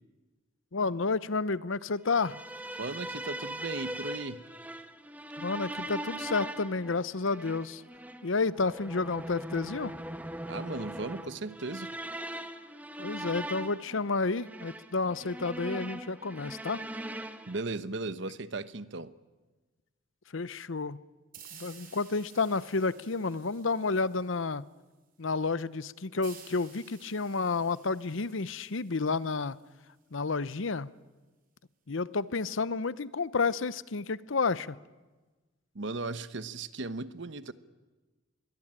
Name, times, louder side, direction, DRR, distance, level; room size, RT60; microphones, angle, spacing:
voice 1, 0.7-2.4 5.4-7.8 8.2-9.9 13.0-16.8 20.3-21.0 21.5-24.6 25.2-29.6 30.1-30.9 31.9-34.8, left 4 dB, 70° left, 17 dB, 0.8 m, -30 dB
sound 1, 2.1-17.6, right 1 dB, 10° right, 1.1 m, -40 dB
voice 2, 2.8-4.4 10.5-11.9 17.5-19.1 35.7-37.5, right 3 dB, 60° right, 14 dB, 1.1 m, -37 dB
sound 2, 21.3-24.7 26.2-29.7, right 7 dB, 45° right, 5.0 m, -54 dB
26.0 x 22.0 x 8.9 m, 1.2 s
head